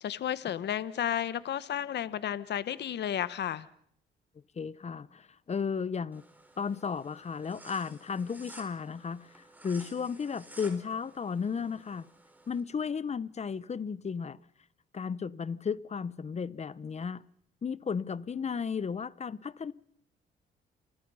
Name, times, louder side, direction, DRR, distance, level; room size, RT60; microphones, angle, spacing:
voice 1, 0.0-3.7, left 10 dB, 60° left, 1.0 m, -32 dB
voice 2, 4.6-6.2 6.6-12.1 12.5-14.4 14.9-17.2 17.6-19.7, left 6 dB, 35° left, 0.9 m, -34 dB
sound 1, 6.1-12.6, right 1 dB, 10° right, 5.0 m, -53 dB
29.0 x 24.0 x 5.6 m
cardioid pair, 90°, 20 cm